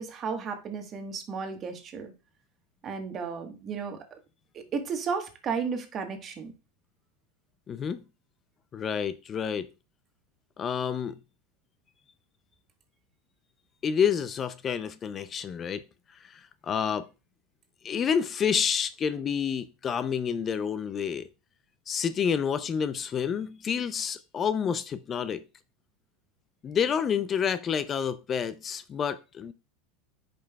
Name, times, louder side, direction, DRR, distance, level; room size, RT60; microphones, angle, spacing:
voice 1, 0.0-2.1 2.8-4.0 4.5-6.5, right 5 dB, 35° right, 1.3 m, -33 dB
voice 2, 7.7-8.0 8.7-9.7 10.6-11.2 13.8-15.8 16.2-17.1 17.8-21.3 21.9-25.4 26.6-29.5, left 7 dB, 30° left, 0.4 m, -29 dB
10.0 x 5.3 x 2.3 m
hypercardioid pair, 100°, 0 cm